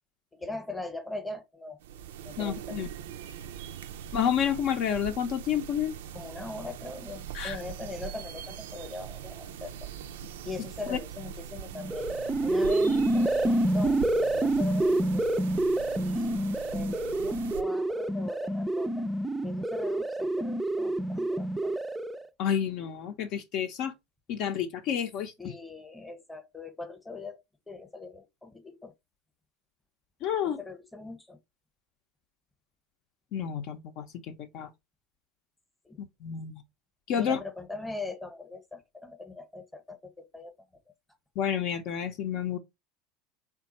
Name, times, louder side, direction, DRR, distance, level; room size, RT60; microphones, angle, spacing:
voice 1, 0.3-1.8 2.2-2.8 6.1-9.9 10.4-12.1 12.4-15.2 16.0-16.4 16.7-19.1 19.4-21.8 25.4-28.9 30.4-31.4 35.8-36.0 37.2-40.5, left 3 dB, 10° left, 0.9 m, -41 dB
sound 1, 1.8-17.6, right 9 dB, 80° right, 0.4 m, -42 dB
voice 2, 2.4-2.9 4.1-5.9 7.3-7.6 10.9-11.0 22.4-23.9 24.3-25.3 30.2-30.6 33.3-34.7 36.0-36.6 37.1-37.4 41.4-42.6, left 9 dB, 60° left, 0.6 m, -30 dB
sound 2, 11.7-22.3, right 1 dB, 10° right, 0.3 m, -27 dB
3.5 x 2.3 x 4.1 m
hypercardioid pair, 90°, 0 cm